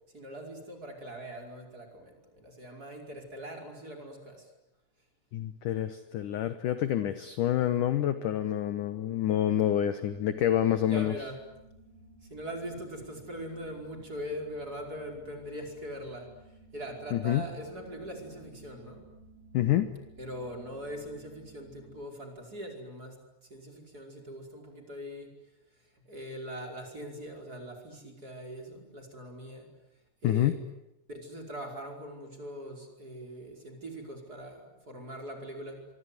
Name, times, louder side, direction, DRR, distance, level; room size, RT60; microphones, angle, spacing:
voice 1, 0.1-4.5 10.8-11.4 12.3-16.3 16.7-19.1 20.2-23.2 23.5-25.4 26.1-29.7 30.2-30.6 31.1-35.9, equal, 20° right, 2 dB, 5.1 m, -41 dB
voice 2, 5.3-11.1 17.1-17.4 19.5-19.9 30.2-30.6, left 11 dB, 70° left, 10 dB, 2.0 m, -27 dB
sound 1, 10.1-22.0, right 2 dB, 45° right, 5.2 m, -55 dB
25.5 x 24.5 x 9.6 m, 0.88 s
omnidirectional pair, 5.0 m